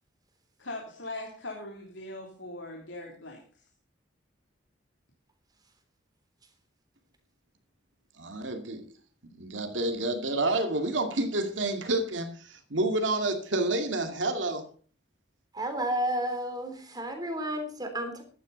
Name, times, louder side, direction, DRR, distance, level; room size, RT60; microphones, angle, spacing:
voice 1, 0.6-3.4, left 2 dB, 90° left, 3.2 m, -40 dB
voice 2, 8.2-8.8 9.3-14.6, right 2 dB, 85° right, 2.4 m, -29 dB
voice 3, 15.5-18.2, right 1 dB, 20° right, 3.5 m, -31 dB
15.0 x 12.0 x 4.1 m
head